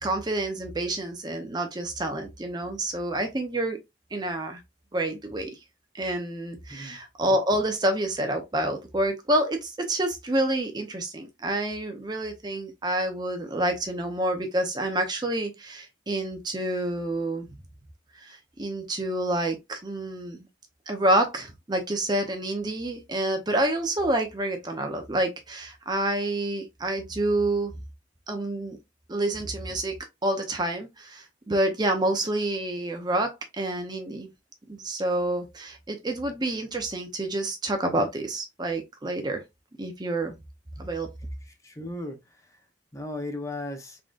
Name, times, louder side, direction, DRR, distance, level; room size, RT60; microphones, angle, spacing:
voice 1, 0.0-3.8 4.1-4.6 4.9-5.5 5.9-17.5 18.2-20.4 20.9-27.7 28.3-28.8 29.1-30.0 30.2-34.3 34.7-39.4 39.8-40.4 40.8-41.1, right 1 dB, 25° right, 0.6 m, -28 dB
voice 2, 41.4-42.6 42.9-44.0, left 2 dB, 15° left, 0.7 m, -37 dB
3.7 x 3.7 x 2.4 m
head